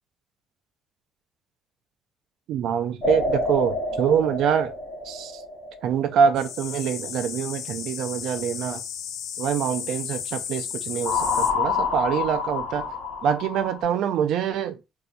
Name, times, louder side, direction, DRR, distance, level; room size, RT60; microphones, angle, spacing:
voice 1, 2.5-4.7 5.0-5.4 5.8-8.8 9.4-12.9 13.2-14.8, right 8 dB, 75° right, 0.5 m, -25 dB
sound 1, 3.0-6.3 11.1-13.8, left 3 dB, 40° left, 1.1 m, -28 dB
enoshima bugs bell, 6.4-11.5, left 8 dB, 75° left, 0.4 m, -34 dB
2.7 x 2.3 x 4.0 m
cardioid pair, 130°, 0 cm